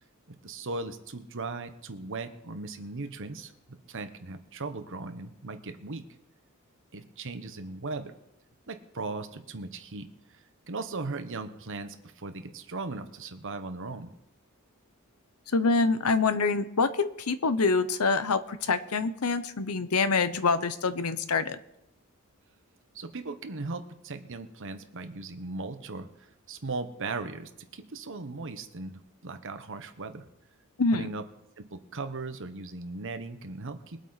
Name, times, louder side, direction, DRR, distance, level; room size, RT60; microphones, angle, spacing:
voice 1, 0.3-6.1 6.9-8.1 8.7-14.1 22.9-30.3 30.9-31.3 31.6-34.0, right 3 dB, 60° right, 9 dB, 1.1 m, -38 dB
voice 2, 15.5-21.6 30.8-31.1, left 4 dB, 80° left, 12 dB, 0.8 m, -26 dB
22.0 x 8.2 x 4.1 m, 0.81 s
head